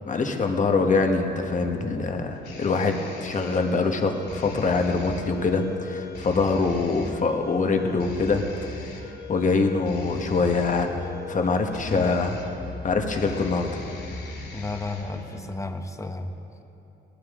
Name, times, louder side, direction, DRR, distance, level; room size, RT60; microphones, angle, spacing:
voice 1, 0.1-11.0 11.3-12.3 12.8-13.8, left 4 dB, 40° left, 4 dB, 1.4 m, -24 dB
sound 1, 0.9-15.4, left 3 dB, 55° left, 3.6 m, -39 dB
voice 2, 11.9-12.2 14.5-16.3, left 2 dB, 15° left, 6 dB, 1.0 m, -33 dB
19.0 x 13.5 x 3.7 m, 3.0 s
cardioid pair, 90°, 20 cm